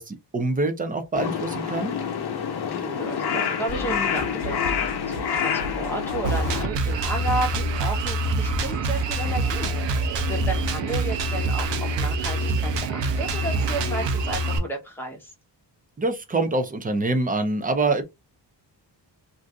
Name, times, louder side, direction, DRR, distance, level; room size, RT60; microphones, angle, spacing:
voice 1, 0.0-1.9 16.0-18.0, right 2 dB, 20° right, 0.4 m, -25 dB
Crow, 1.2-6.7, left 7 dB, 65° left, 0.8 m, -27 dB
voice 2, 2.7-15.3, right 1 dB, 5° left, 0.9 m, -33 dB
sound 1, 3.7-11.4, equal, 60° right, 1.4 m, -37 dB
Drum kit, 6.2-14.6, right 2 dB, 90° right, 0.7 m, -25 dB
2.6 x 2.5 x 3.3 m
wide cardioid pair, 160°, 42 cm